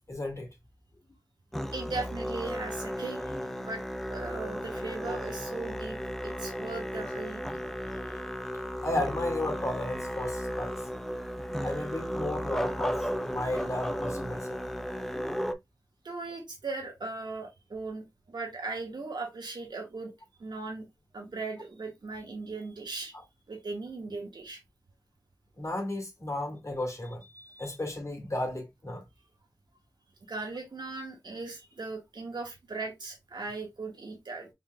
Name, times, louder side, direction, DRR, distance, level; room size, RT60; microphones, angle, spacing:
voice 1, 0.1-0.5 5.1-5.2 8.8-10.8 11.6-14.6 25.6-27.2 27.6-29.0, left 1 dB, 40° left, 2.1 m, -34 dB
Musical instrument, 1.5-15.5, equal, 5° left, 0.6 m, -34 dB
voice 2, 1.7-3.8 4.1-6.0 6.2-7.4 16.0-20.1 20.4-20.9 21.1-23.1 23.5-24.6 27.3-27.8 30.3-34.5, right 3 dB, 80° right, 1.5 m, -38 dB
4.7 x 3.7 x 2.2 m
cardioid pair, 40°, 7 cm